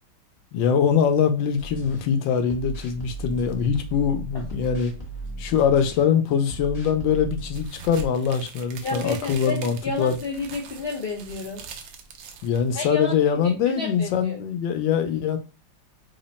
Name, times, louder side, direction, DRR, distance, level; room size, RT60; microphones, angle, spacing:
voice 1, 0.5-4.9 5.4-10.2 12.4-15.4, left 7 dB, 90° left, 1.4 m, -23 dB
sound 1, 1.6-2.0 2.5-6.0 6.4-7.7, right 2 dB, 30° left, 0.8 m, -36 dB
sound 2, 7.5-13.0, right 4 dB, 80° right, 1.2 m, -41 dB
voice 2, 8.8-11.6 12.7-13.1 13.4-14.4, left 3 dB, 70° left, 0.5 m, -31 dB
3.6 x 2.1 x 3.9 m
omnidirectional pair, 2.0 m